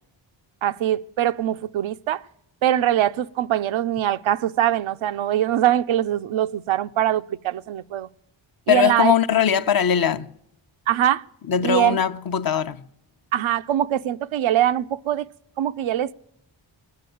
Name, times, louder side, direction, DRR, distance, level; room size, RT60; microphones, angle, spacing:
voice 1, 0.6-2.2 2.6-8.1 8.7-9.1 10.9-11.2 11.6-12.0 13.3-15.3 15.6-16.1, right 12 dB, 85° right, 0.6 m, -22 dB
voice 2, 8.7-10.3 11.5-12.8, left 8 dB, 50° left, 0.7 m, -20 dB
20.0 x 6.7 x 9.1 m
cardioid pair, 55°, 47 cm